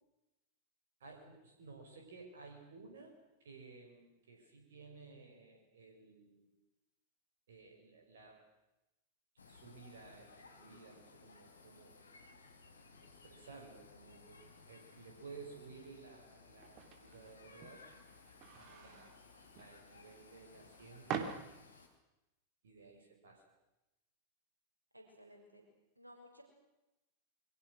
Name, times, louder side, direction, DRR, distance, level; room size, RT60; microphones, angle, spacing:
voice 1, 1.0-3.1 3.4-6.6 7.5-8.5 9.5-12.0 13.2-17.9 18.5-21.5 22.6-23.4, right 4 dB, 65° right, 3 dB, 5.4 m, -55 dB
sound 1, 9.4-21.9, left 4 dB, 75° left, 4.0 m, -60 dB
sound 2, 16.6-22.0, right 7 dB, 40° right, 3.3 m, -47 dB
voice 2, 18.7-19.1 24.9-25.6 26.0-26.4, equal, 85° right, 2 dB, 6.1 m, -58 dB
28.0 x 24.5 x 6.3 m, 0.96 s
figure-of-eight pair, 90°, 0 cm